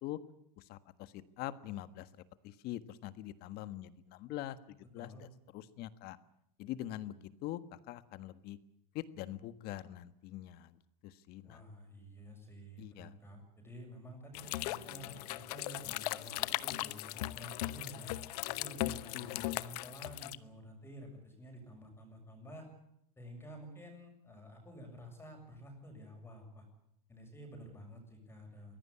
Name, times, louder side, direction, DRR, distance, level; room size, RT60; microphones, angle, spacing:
voice 1, 0.6-2.1 2.4-6.2 6.6-8.6 8.9-11.6 12.8-13.1 18.8-19.6, left 13 dB, 50° left, 13 dB, 1.5 m, -44 dB
voice 2, 11.4-18.1 18.5-22.7 23.2-26.7 27.1-28.8, equal, 10° left, 3 dB, 6.8 m, -51 dB
sound 1, 14.3-20.4, left 17 dB, 75° left, 1.0 m, -38 dB
23.5 x 17.0 x 8.7 m, 0.76 s
supercardioid pair, 130°, 21 cm